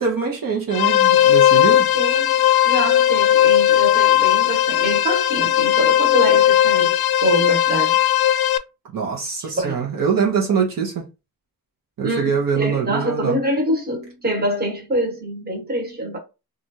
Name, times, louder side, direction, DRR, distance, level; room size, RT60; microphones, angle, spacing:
voice 1, 0.0-1.9 8.9-11.0 12.0-13.4, right 6 dB, 65° right, 0.9 m, -23 dB
sound 1, 0.7-8.6, left 12 dB, 80° left, 0.5 m, -17 dB
voice 2, 1.9-2.3 2.6-8.0 9.4-9.8 12.0-16.2, right 1 dB, 25° right, 1.2 m, -25 dB
3.2 x 2.5 x 2.7 m
wide cardioid pair, 135°, 37 cm